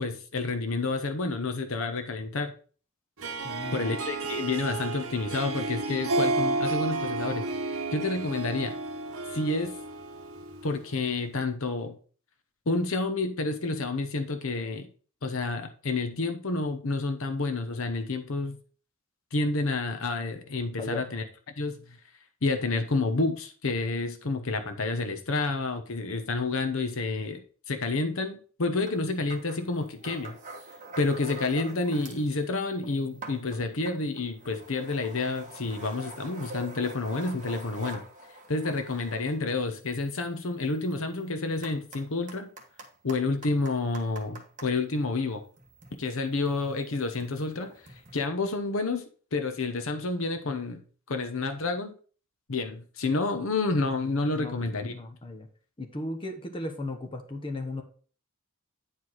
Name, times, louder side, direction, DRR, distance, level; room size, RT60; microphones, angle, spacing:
voice 1, 0.0-2.5 3.7-8.7 9.3-9.7 10.6-12.0 12.7-14.9 15.2-18.6 19.3-21.2 21.6-22.0 22.4-27.4 27.7-30.4 31.0-38.0 38.5-42.5 43.0-45.4 46.0-47.7 48.1-49.0 49.3-50.8 51.1-51.9 52.5-54.9, left 3 dB, 60° left, 7 dB, 0.9 m, -29 dB
Harp, 3.2-10.9, right 3 dB, 65° right, 1.1 m, -32 dB
voice 2, 3.4-3.9 20.8-21.0 54.3-54.6 54.9-55.5 55.8-57.8, left 2 dB, 25° left, 4 dB, 1.0 m, -36 dB
sound 1, 28.9-29.0 29.3-32.3 32.6-44.7 45.5-48.2, right 2 dB, 35° right, 1.3 m, -46 dB
9.3 x 4.8 x 4.0 m, 0.41 s
head